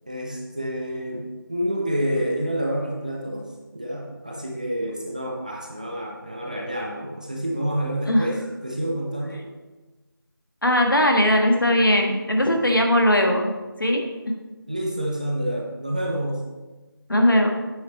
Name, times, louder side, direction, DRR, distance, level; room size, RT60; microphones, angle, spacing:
voice 1, 0.1-8.4 8.6-9.5 14.7-16.5, equal, 20° right, -1 dB, 0.6 m, -28 dB
voice 2, 10.6-13.5 13.8-14.0 17.1-17.5, left 1 dB, 60° left, 2 dB, 1.5 m, -19 dB
8.9 x 6.4 x 4.2 m, 1.2 s
figure-of-eight pair, 170°, 12 cm